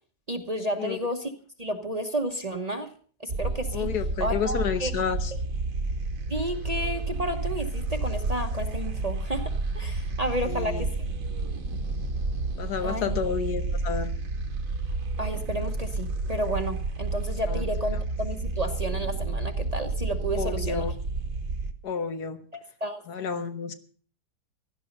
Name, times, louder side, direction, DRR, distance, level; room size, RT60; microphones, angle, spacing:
voice 1, 0.3-1.3 1.6-2.9 3.2-3.9 4.2-4.9 6.3-10.9 12.8-13.2 15.2-20.9 22.5-23.0, right 1 dB, 30° right, 6 dB, 1.0 m, -31 dB
sound 1, 3.3-21.7, right 3 dB, 60° right, 1.6 m, -30 dB
voice 2, 3.7-5.3 10.5-10.9 12.6-14.1 17.5-17.6 20.3-20.9 21.8-22.4 23.1-23.7, left 6 dB, 75° left, 9 dB, 1.7 m, -30 dB
16.5 x 12.0 x 5.4 m, 0.43 s
omnidirectional pair, 1.7 m